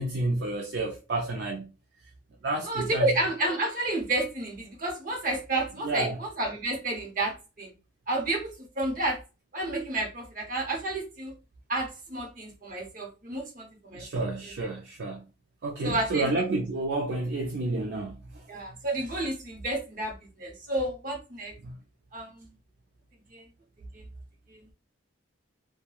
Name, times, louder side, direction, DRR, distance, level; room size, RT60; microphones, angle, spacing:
voice 1, 0.0-1.7 2.4-3.1 5.8-6.2 13.9-15.3 15.6-18.5 21.6-21.8, right 2 dB, 60° right, 0.4 m, -30 dB
voice 2, 2.6-7.7 8.1-9.2 9.5-11.3 11.7-14.2 15.8-16.3 18.5-21.5 22.1-22.5 23.3-23.4 23.9-24.0 24.5-24.7, right 2 dB, 40° right, 0.8 m, -31 dB
3.1 x 2.2 x 2.3 m
head